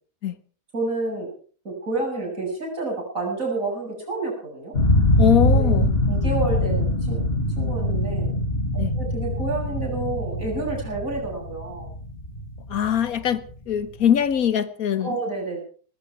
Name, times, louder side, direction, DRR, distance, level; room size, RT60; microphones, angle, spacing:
voice 1, 0.7-1.3 1.6-4.7 5.4-5.8 6.1-7.2 7.6-8.3 8.9-11.9 15.0-15.6, right 2 dB, 60° right, 8.1 m, -29 dB
sound 1, 4.7-13.6, left 1 dB, 40° left, 2.7 m, -23 dB
voice 2, 5.2-5.9 8.8-8.9 12.7-15.2, left 9 dB, 70° left, 1.4 m, -22 dB
19.0 x 15.5 x 4.7 m
omnidirectional pair, 1.6 m